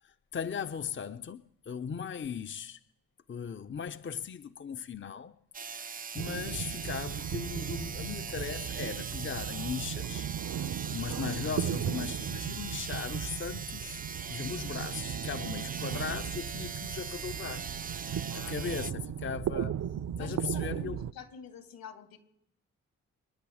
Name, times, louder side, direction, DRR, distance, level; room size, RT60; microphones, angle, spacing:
voice 1, 0.0-2.8 3.3-10.3 10.6-17.7 18.0-19.8 20.2-21.1, left 7 dB, 35° left, 0.8 m, -38 dB
sound 1, 5.5-18.9, right 6 dB, 25° right, 0.5 m, -41 dB
sound 2, 6.2-21.1, right 9 dB, 50° right, 0.8 m, -36 dB
voice 2, 20.2-22.2, left 6 dB, 70° left, 3.3 m, -48 dB
27.5 x 10.0 x 4.9 m
hypercardioid pair, 45°, 36 cm